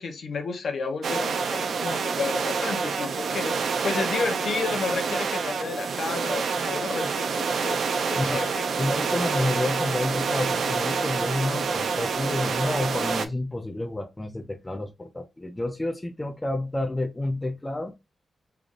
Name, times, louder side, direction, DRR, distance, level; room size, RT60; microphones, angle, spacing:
voice 1, 0.0-8.6, left 4 dB, 70° left, 0.8 m, -32 dB
sound 1, 1.0-13.3, right 5 dB, 70° right, 0.4 m, -27 dB
voice 2, 8.2-8.5 8.8-17.9, left 2 dB, 15° left, 0.5 m, -29 dB
3.7 x 3.4 x 2.4 m
wide cardioid pair, 110°, 0 cm